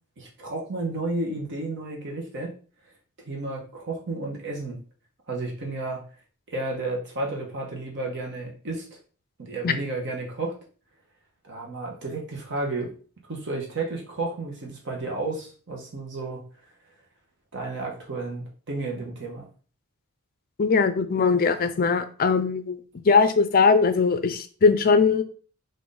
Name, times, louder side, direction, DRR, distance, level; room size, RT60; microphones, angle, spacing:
voice 1, 0.2-2.5 3.2-4.8 5.3-6.1 6.5-8.9 9.4-10.6 11.4-12.9 13.3-16.5 17.5-19.5, right 2 dB, 55° right, -1 dB, 1.0 m, -32 dB
voice 2, 20.6-25.2, left 5 dB, 40° left, 11 dB, 0.4 m, -20 dB
3.8 x 2.6 x 3.9 m, 0.39 s
head